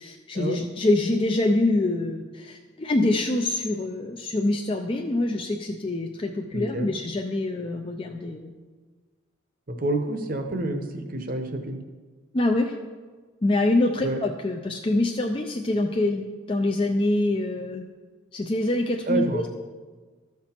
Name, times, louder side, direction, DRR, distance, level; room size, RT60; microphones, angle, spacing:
voice 1, 0.0-8.5 12.3-12.8 13.4-17.9 18.3-19.5, left 2 dB, 25° left, 3 dB, 0.4 m, -25 dB
voice 2, 6.5-6.9 9.7-11.8 14.0-14.2 19.0-19.5, right 2 dB, 45° right, 6 dB, 0.8 m, -28 dB
13.5 x 5.9 x 4.4 m, 1.4 s
head